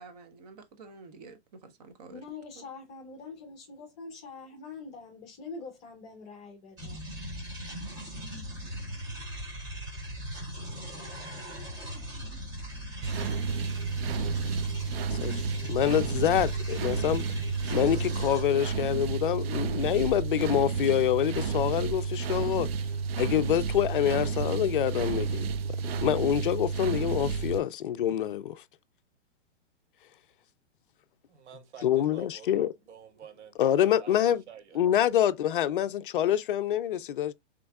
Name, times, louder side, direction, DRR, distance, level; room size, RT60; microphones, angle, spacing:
voice 1, 0.0-2.2 2.5-2.7, right 4 dB, 35° right, 0.9 m, -49 dB
voice 2, 2.1-7.0, left 4 dB, 20° left, 1.1 m, -44 dB
sound 1, 6.8-18.4, equal, 10° right, 1.0 m, -39 dB
sound 2, 13.0-27.6, right 5 dB, 55° right, 0.5 m, -31 dB
voice 3, 15.1-17.2 17.7-22.7 23.2-25.5 26.0-28.6 31.8-32.7 33.6-34.4 34.7-37.3, left 10 dB, 50° left, 0.5 m, -26 dB
voice 4, 31.3-34.8, right 7 dB, 75° right, 1.5 m, -49 dB
6.1 x 3.1 x 2.3 m
hypercardioid pair, 165°, 35 cm